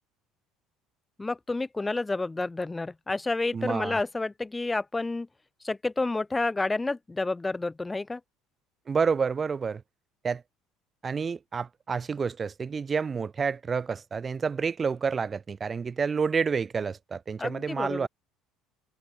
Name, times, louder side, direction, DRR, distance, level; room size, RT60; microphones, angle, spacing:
voice 1, 1.2-5.3 5.6-8.2 17.4-18.1, left 3 dB, 15° left, 0.8 m, -30 dB
voice 2, 3.5-4.0 8.9-9.8 10.2-10.4 11.0-18.1, right 5 dB, 30° right, 1.2 m, -29 dB
hypercardioid pair, 70°, 0 cm